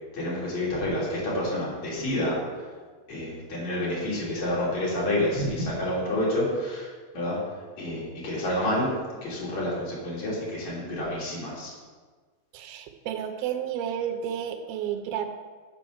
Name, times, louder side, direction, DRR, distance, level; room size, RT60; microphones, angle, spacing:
voice 1, 0.1-2.4 3.1-8.9 9.2-11.7, left 1 dB, 50° left, -7 dB, 4.3 m, -29 dB
voice 2, 12.5-15.3, right 9 dB, 85° right, 7 dB, 2.7 m, -31 dB
7.9 x 7.5 x 6.2 m, 1.4 s
omnidirectional pair, 4.2 m